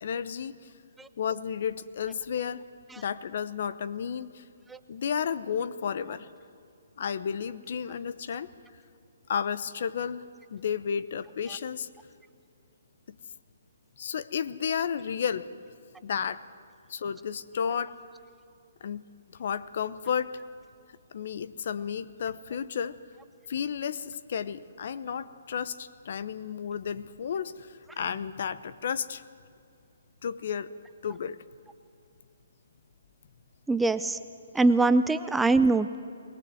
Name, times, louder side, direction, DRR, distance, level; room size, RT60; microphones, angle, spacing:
voice 1, 0.0-0.7 1.2-2.6 3.0-4.4 4.9-6.3 7.0-8.5 9.3-11.9 13.1-13.2 14.0-15.5 16.0-16.4 16.9-18.0 18.8-19.0 19.3-20.4 21.1-23.0 23.5-29.2 30.2-30.7 31.0-31.4, left 7 dB, 55° left, 15 dB, 0.8 m, -32 dB
voice 2, 33.7-34.2 34.5-36.0, right 3 dB, 5° right, 11 dB, 0.4 m, -23 dB
22.0 x 19.0 x 7.7 m, 2.5 s
hypercardioid pair, 150°, 0 cm